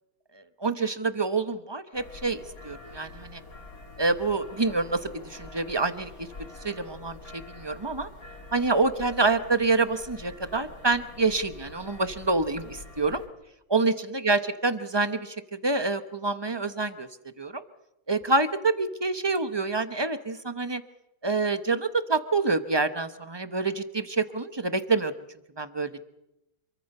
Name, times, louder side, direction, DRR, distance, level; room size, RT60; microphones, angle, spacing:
voice 1, 0.3-3.4 4.0-6.3 6.6-8.1 8.5-13.2 13.7-15.4 15.6-17.1 17.4-17.6 18.1-20.8 21.2-25.1 25.6-25.9, right 3 dB, 25° right, 11 dB, 0.6 m, -27 dB
sound 1, 1.9-13.3, left 2 dB, 50° left, 3.5 m, -46 dB
27.5 x 23.0 x 5.5 m, 0.91 s
omnidirectional pair, 2.0 m